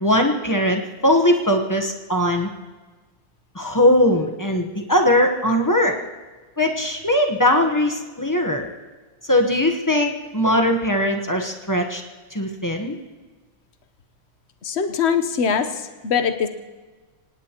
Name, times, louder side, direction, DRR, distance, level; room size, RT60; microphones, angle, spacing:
voice 1, 0.0-2.5 3.5-6.0 6.6-8.7 9.3-12.0 12.3-13.0, left 1 dB, 20° left, 3 dB, 0.4 m, -20 dB
voice 2, 14.6-16.5, left 6 dB, 55° left, 8 dB, 0.7 m, -22 dB
25.5 x 18.5 x 3.0 m, 1.3 s
omnidirectional pair, 2.3 m